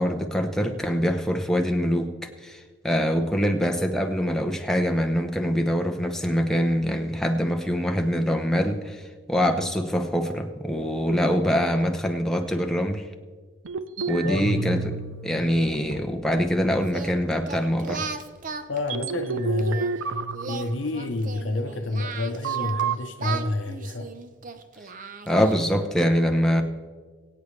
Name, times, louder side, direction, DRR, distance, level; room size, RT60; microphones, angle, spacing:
voice 1, 0.0-13.1 14.1-15.0 15.2-18.0 25.3-26.6, equal, ahead, 0.8 m, -24 dB
sound 1, 13.7-15.4 15.7-16.7 17.2-17.3 17.9-18.0 18.8-21.3 22.4-23.0, right 5 dB, 75° right, 0.6 m, -31 dB
voice 2, 14.2-14.6 18.7-24.1, left 2 dB, 70° left, 0.8 m, -29 dB
Singing, 16.9-19.9 20.3-22.8 23.2-25.8, right 5 dB, 40° right, 0.6 m, -37 dB
22.5 x 8.4 x 3.2 m
head